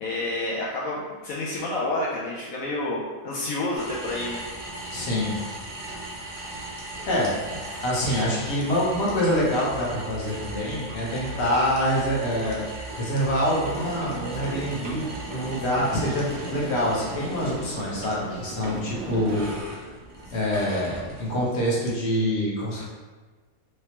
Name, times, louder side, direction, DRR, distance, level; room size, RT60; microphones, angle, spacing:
voice 1, 0.0-4.4, left 2 dB, 75° left, -5 dB, 1.0 m, -29 dB
sound 1, 3.7-21.5, right 2 dB, 35° right, 0.4 m, -38 dB
voice 2, 4.9-5.3 6.2-6.3 7.1-7.3 7.8-12.7 13.0-19.4 20.3-22.9, equal, 55° left, -5 dB, 1.1 m, -26 dB
sound 2, 13.6-19.6, right 3 dB, 60° right, 0.8 m, -38 dB
3.2 x 2.9 x 2.9 m, 1.3 s
omnidirectional pair, 1.5 m